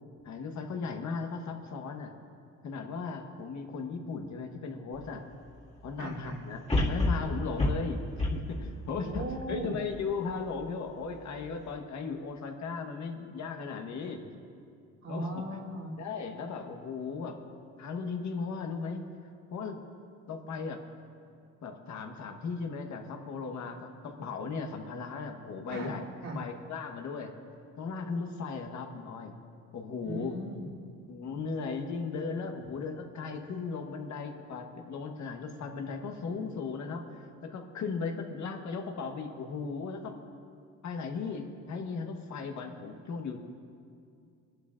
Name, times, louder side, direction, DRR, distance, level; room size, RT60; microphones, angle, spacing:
voice 1, 0.2-2.1 2.6-5.2 5.8-6.6 6.9-8.0 8.3-14.3 15.1-15.4 16.0-17.4 17.8-19.0 19.5-19.8 20.3-20.8 21.6-26.0 26.3-27.3 27.8-29.3 29.7-30.4 31.1-40.1 40.8-43.4, left 5 dB, 70° left, 3 dB, 1.3 m, -37 dB
lion bounding into trailer, 5.0-5.1 6.7-10.0 10.5-10.6, left 2 dB, 20° left, 2.2 m, -30 dB
voice 2, 6.0-6.4 9.0-9.8 15.0-15.9 25.7-26.0 26.2-26.4 30.0-30.7, right 1 dB, 65° right, -6 dB, 3.0 m, -38 dB
24.5 x 11.5 x 2.5 m, 2.4 s
cardioid pair, 90°, 30 cm